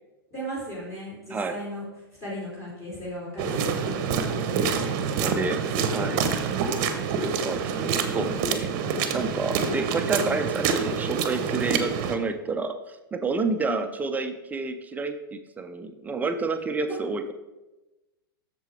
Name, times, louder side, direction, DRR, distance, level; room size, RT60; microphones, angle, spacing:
voice 1, 0.3-1.8 2.2-3.9 4.5-4.7 5.1-6.6 11.6-11.9 13.6-13.8 16.9-17.0, equal, 25° left, -7 dB, 2.9 m, -37 dB
sound 1, 3.4-12.2, right 6 dB, 45° right, 0.8 m, -27 dB
voice 2, 5.2-5.6 5.9-6.2 7.2-8.7 9.1-17.3, right 3 dB, 15° right, 7 dB, 0.5 m, -29 dB
8.0 x 6.8 x 3.3 m, 1.1 s
hypercardioid pair, 105°, 13 cm